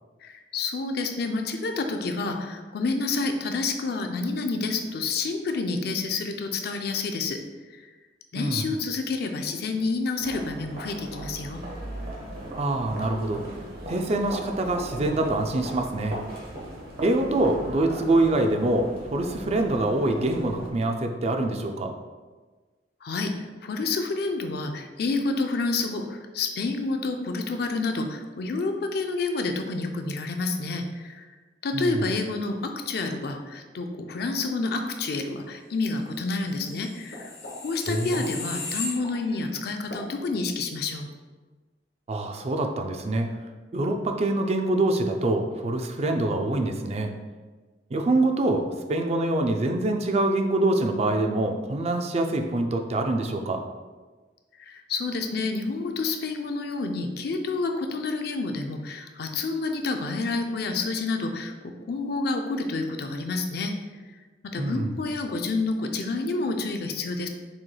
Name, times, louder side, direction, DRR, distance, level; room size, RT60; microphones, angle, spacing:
voice 1, 0.2-7.4 7.7-7.9 8.3-11.6 23.0-23.3 23.6-31.3 31.6-37.3 37.6-41.1 54.6-63.8 64.5-67.3, left 3 dB, 60° left, 5 dB, 0.4 m, -29 dB
voice 2, 8.3-8.7 12.6-13.4 13.9-16.2 17.0-21.9 31.7-32.0 37.9-38.2 42.1-43.3 43.7-47.1 47.9-53.6 64.6-64.9, right 2 dB, 35° right, 5 dB, 0.4 m, -25 dB
sound 1, 10.2-20.7, right 1 dB, 55° right, 1.1 m, -38 dB
sound 2, 36.6-39.5 39.9-40.1, left 2 dB, 85° left, 1.0 m, -36 dB
6.1 x 3.3 x 2.2 m, 1.3 s
head